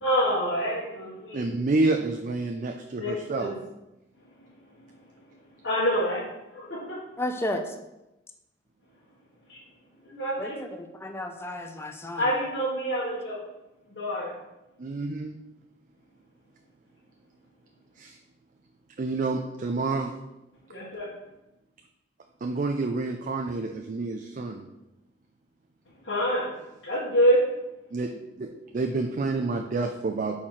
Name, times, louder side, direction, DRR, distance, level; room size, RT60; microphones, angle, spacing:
voice 1, 0.0-1.5 3.0-3.5 5.6-6.2 6.5-7.0 9.5-9.6 10.0-10.6 12.2-13.4 13.9-14.3 20.7-21.1 26.0-26.5 26.8-27.5, equal, 90° left, -8 dB, 1.7 m, -26 dB
voice 2, 1.3-3.5 14.8-15.4 18.0-18.2 19.0-20.1 22.4-24.6 27.9-28.1 28.4-30.4, right 3 dB, 45° right, 4 dB, 0.4 m, -28 dB
voice 3, 7.2-7.6 10.4-12.2, left 1 dB, 15° left, 5 dB, 0.5 m, -33 dB
4.6 x 4.3 x 5.7 m, 0.95 s
head